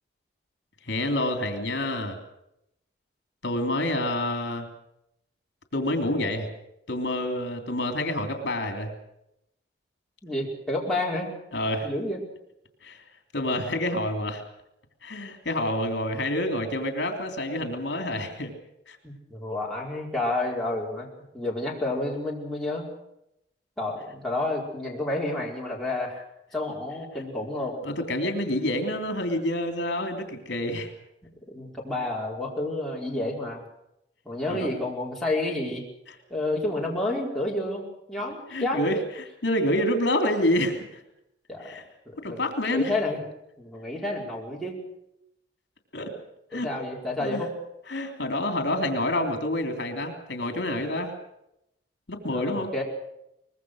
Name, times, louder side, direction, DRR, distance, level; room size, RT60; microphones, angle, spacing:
voice 1, 0.8-2.2 3.4-4.7 5.7-6.5 6.9-8.9 11.5-11.9 12.8-13.0 13.3-14.4 15.0-18.5 18.9-19.0 27.8-30.9 34.5-34.7 38.5-41.0 41.6-41.8 42.2-42.9 45.9-46.1 46.5-46.7 47.2-47.4 47.9-51.1 52.1-52.7, left 1 dB, 70° left, 5 dB, 3.3 m, -28 dB
voice 2, 10.2-11.4 11.8-12.2 19.0-21.1 21.3-22.9 23.8-26.2 26.5-27.8 31.5-33.6 34.2-35.8 36.3-37.8 38.1-38.8 41.5-41.8 42.1-42.4 42.7-43.2 43.6-44.8 46.5-47.5 52.3-52.8, left 2 dB, ahead, -4 dB, 4.9 m, -30 dB
24.0 x 21.0 x 6.5 m, 0.81 s
head